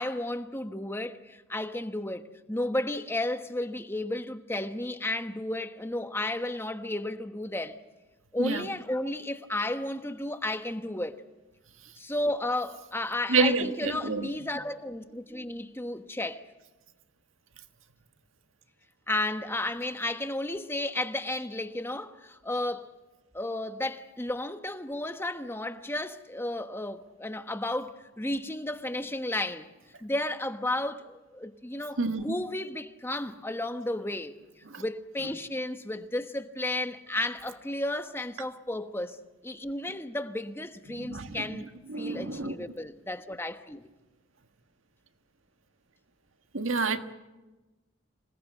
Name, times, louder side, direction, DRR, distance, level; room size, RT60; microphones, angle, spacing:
voice 1, 0.0-2.2 2.5-7.8 8.3-11.2 12.0-16.4 19.1-22.9 23.3-29.7 30.0-34.4 34.8-41.7 42.0-43.9, left 1 dB, 10° left, 1.1 m, -33 dB
voice 2, 13.3-14.3 32.0-32.3 34.7-34.8 41.0-42.6 46.5-47.0, right 3 dB, 90° right, 1.6 m, -29 dB
26.5 x 18.5 x 8.4 m
head